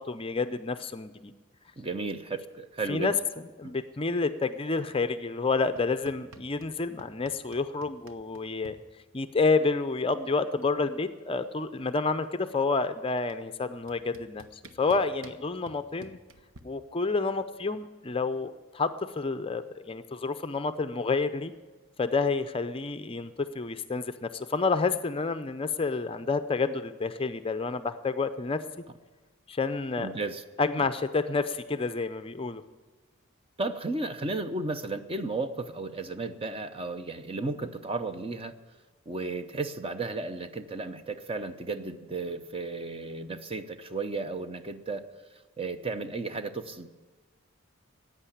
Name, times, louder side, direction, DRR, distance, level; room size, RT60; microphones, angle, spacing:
voice 1, 0.0-1.3 2.9-3.1 3.6-8.8 9.1-14.4 14.8-16.2 16.6-21.5 22.0-28.6 29.5-30.1 30.6-32.6, left 4 dB, 25° left, 10 dB, 0.5 m, -29 dB
voice 2, 1.8-3.1 3.6-3.7 30.0-30.4 30.8-30.9 33.6-38.6 39.1-45.1 45.6-46.9, right 3 dB, 25° right, 9 dB, 0.7 m, -34 dB
sound 1, 5.8-6.7 7.0-8.8 10.0-10.1 10.4-10.8 11.1-12.4 13.3-13.4 13.9-16.6, right 3 dB, 75° right, 1.1 m, -51 dB
15.0 x 9.3 x 9.9 m, 1.3 s
head